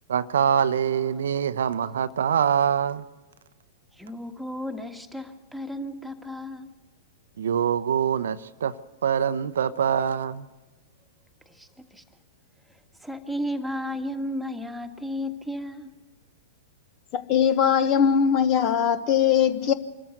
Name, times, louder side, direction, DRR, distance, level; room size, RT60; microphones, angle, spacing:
voice 1, 0.1-3.0 7.4-10.5, right 8 dB, 70° right, 0.7 m, -24 dB
voice 2, 0.9-2.0 3.9-6.7 11.4-12.0 12.7-15.9, left 1 dB, ahead, 1.6 m, -34 dB
voice 3, 17.1-19.7, left 8 dB, 40° left, 1.1 m, -21 dB
25.5 x 14.0 x 8.0 m
figure-of-eight pair, 105°, 0 cm